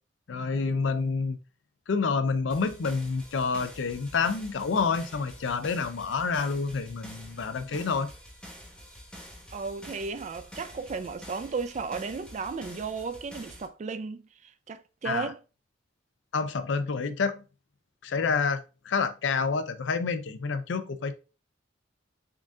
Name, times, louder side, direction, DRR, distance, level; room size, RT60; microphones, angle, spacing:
voice 1, 0.3-1.4 1.9-8.1 15.0-15.3 16.3-17.4 18.0-21.1, left 4 dB, 70° left, 0.5 m, -28 dB
sound 1, 2.5-13.7, equal, 5° left, 0.9 m, -47 dB
voice 2, 9.5-15.4, right 4 dB, 35° right, 0.3 m, -34 dB
3.7 x 3.6 x 2.5 m
head